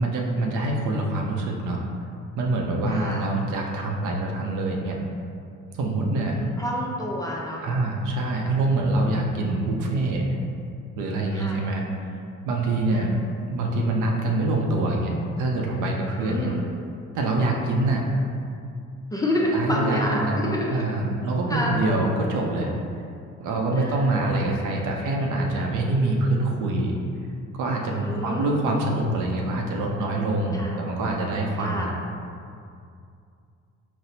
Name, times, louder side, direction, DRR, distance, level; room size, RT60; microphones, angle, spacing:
voice 1, 0.0-1.8 2.4-5.0 5.7-6.4 7.6-10.2 11.0-13.1 13.5-16.5 17.1-18.0 19.5-20.4 20.7-22.7 23.4-27.0 27.5-32.0, right 2 dB, 80° right, 0 dB, 0.5 m, -25 dB
voice 2, 2.9-3.4 6.1-7.6 11.3-11.6 12.9-13.1 16.2-16.7 19.1-20.8 21.5-21.8 23.8-24.5 27.9-28.9 30.5-30.9 31.6-31.9, equal, 10° left, -3 dB, 0.4 m, -29 dB
4.1 x 2.0 x 2.6 m, 2.4 s
cardioid pair, 90°, 30 cm